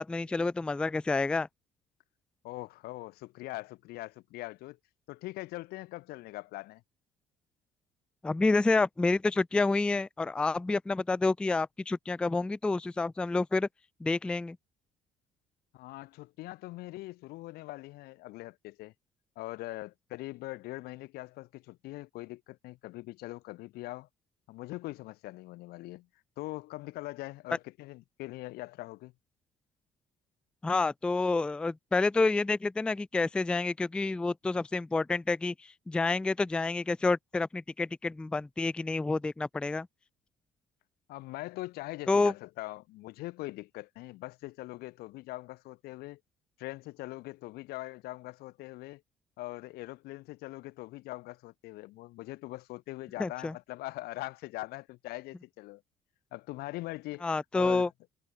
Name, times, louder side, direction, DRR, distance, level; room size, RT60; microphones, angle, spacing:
voice 1, 0.0-1.5 8.2-13.7 14.0-14.6 30.6-39.9 42.1-42.3 53.2-53.5 57.2-57.9, left 3 dB, 5° left, 0.3 m, -28 dB
voice 2, 2.4-4.8 5.1-6.8 15.7-18.9 19.4-24.1 24.5-26.1 26.4-29.1 41.1-46.2 46.6-49.0 49.4-55.8 56.3-57.3 57.5-57.9, left 19 dB, 85° left, 1.1 m, -42 dB
cardioid pair, 145°, 16 cm